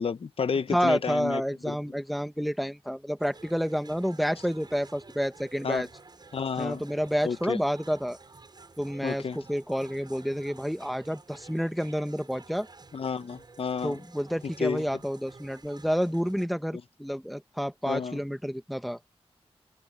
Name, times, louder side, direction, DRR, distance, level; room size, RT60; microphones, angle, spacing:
voice 1, 0.0-1.4 1.7-1.8 5.6-5.9 6.3-6.8 7.2-7.6 9.0-9.4 12.9-14.0 14.6-14.8 17.9-18.2, left 5 dB, 65° left, 0.9 m, -30 dB
voice 2, 0.7-5.9 6.6-8.2 8.8-12.7 13.8-19.0, equal, ahead, 1.3 m, -29 dB
sound 1, 3.2-16.5, right 3 dB, 45° right, 7.2 m, -52 dB
wide cardioid pair, 120°, 10 cm